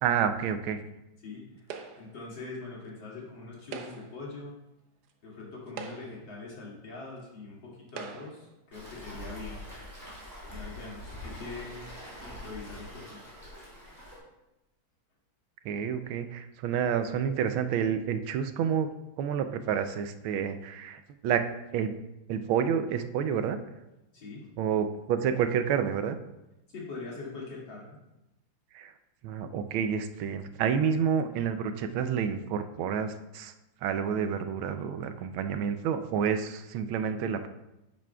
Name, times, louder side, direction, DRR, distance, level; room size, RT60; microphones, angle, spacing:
voice 1, 0.0-0.8 15.6-18.9 19.2-21.9 22.3-23.6 24.6-26.2 28.7-28.9 29.2-33.5 33.8-37.5, right 7 dB, 90° right, 9 dB, 1.5 m, -29 dB
voice 2, 1.2-1.7 1.9-4.6 5.2-9.6 10.5-11.8 12.2-13.2 13.8-14.0 24.1-24.5 26.7-28.0, left 3 dB, 70° left, -5 dB, 3.1 m, -43 dB
sound 1, 1.7-2.2 3.6-4.2 5.1-5.2 5.7-6.3 7.2-7.3 7.9-8.5, right 6 dB, 65° right, 1.1 m, -42 dB
Waves surf, 8.7-14.2, left 1 dB, 10° right, 3.3 m, -44 dB
10.5 x 8.6 x 2.3 m, 0.94 s
omnidirectional pair, 2.2 m